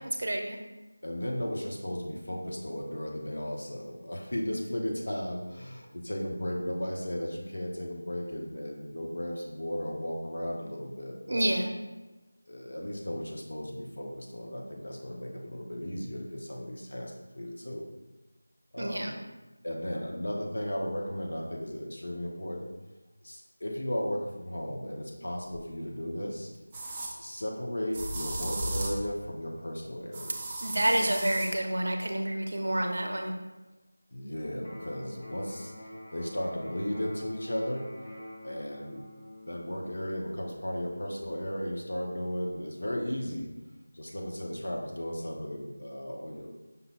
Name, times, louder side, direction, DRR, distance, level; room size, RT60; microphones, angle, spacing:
voice 1, 0.2-0.6 11.3-11.7 18.8-19.1 30.6-33.3, right 1 dB, 55° right, 3 dB, 0.6 m, -28 dB
voice 2, 1.0-11.5 12.5-17.9 18.7-19.1 19.6-22.7 23.2-26.5 27.2-30.4 34.1-35.7 36.1-37.9 38.4-39.0 39.4-43.5 43.9-46.5, equal, 60° left, 0 dB, 0.8 m, -35 dB
sound 1, 25.5-25.6 26.7-27.1 27.9-29.0 30.1-31.5, right 2 dB, 10° right, 0.3 m, -35 dB
Electric guitar, 34.6-42.6, left 1 dB, 15° left, 0.7 m, -47 dB
5.4 x 2.2 x 4.2 m, 1.1 s
figure-of-eight pair, 175°, 0 cm